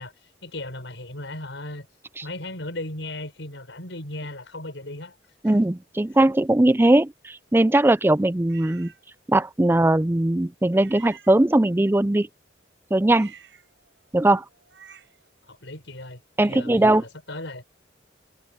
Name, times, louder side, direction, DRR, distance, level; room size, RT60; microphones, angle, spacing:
voice 1, 0.0-1.9 2.2-5.2 5.4-5.6 15.5-17.6, left 1 dB, 75° left, 5.3 m, -36 dB
voice 2, 5.4-8.9 9.3-12.3 12.9-13.3 14.1-14.4 16.4-17.0, right 1 dB, 10° right, 0.4 m, -20 dB
sound 1, 8.5-9.0 10.7-11.8 13.1-15.3, right 8 dB, 70° right, 5.8 m, -50 dB
head